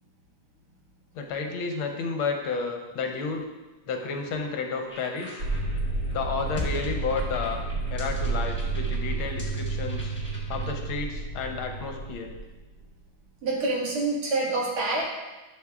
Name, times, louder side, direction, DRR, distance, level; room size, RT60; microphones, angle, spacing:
voice 1, 1.1-3.4 3.9-5.4 6.1-7.6 7.9-10.1 10.5-12.3, left 4 dB, 75° left, 3 dB, 1.6 m, -31 dB
sound 1, 4.9-10.7, left 1 dB, 10° left, 0.7 m, -40 dB
sound 2, 5.4-12.8, right 3 dB, 55° right, 0.9 m, -31 dB
voice 2, 13.4-15.0, right 2 dB, 80° right, -4 dB, 2.7 m, -26 dB
11.5 x 6.4 x 2.4 m, 1.1 s
omnidirectional pair, 2.4 m